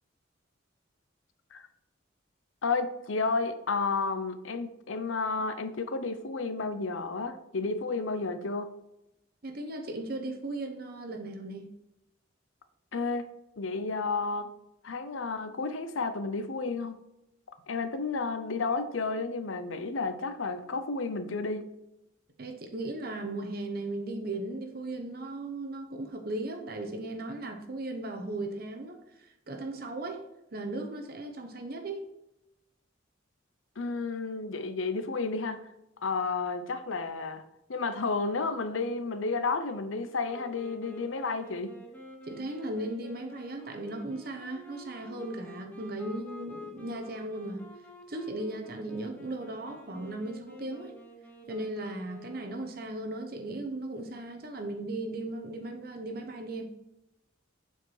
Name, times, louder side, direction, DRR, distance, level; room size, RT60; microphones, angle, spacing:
voice 1, 2.6-8.7 12.9-13.3 13.6-14.6 14.8-17.0 17.7-21.7 33.8-35.6 36.0-37.4 37.7-41.7, left 4 dB, 80° left, 0.7 m, -31 dB
voice 2, 9.4-11.7 22.4-30.2 30.5-32.0 42.3-47.7 48.1-50.9 51.5-56.7, right 2 dB, 50° right, 0.9 m, -37 dB
Wind instrument woodwind instrument, 40.2-52.7, left 2 dB, 10° left, 1.0 m, -49 dB
7.5 x 4.6 x 4.8 m
head